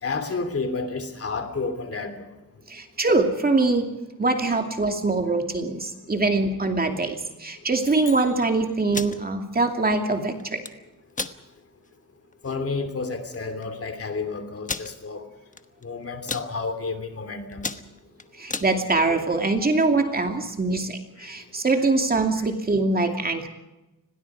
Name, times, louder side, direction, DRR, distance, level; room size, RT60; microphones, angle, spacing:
voice 1, 0.0-2.3 12.4-15.2 15.8-17.7 21.2-21.3 22.4-22.5, left 4 dB, 45° left, 7 dB, 3.0 m, -30 dB
voice 2, 2.7-3.9 4.2-10.6 18.4-23.5, right 3 dB, 25° right, 4 dB, 2.6 m, -23 dB
sound 1, 7.8-9.5, left 5 dB, 70° left, 6.3 m, -46 dB
sound 2, 8.8-9.2 10.4-10.7 11.1-11.4 11.9-12.0 12.3-12.5 13.3-13.4 13.6-13.7 14.6-14.9 15.5-15.8 16.1-16.5 17.0-17.2 17.5-18.7, left 4 dB, 25° left, 1.2 m, -32 dB
30.0 x 21.5 x 4.9 m, 1.0 s
wide cardioid pair, 155°, 33 cm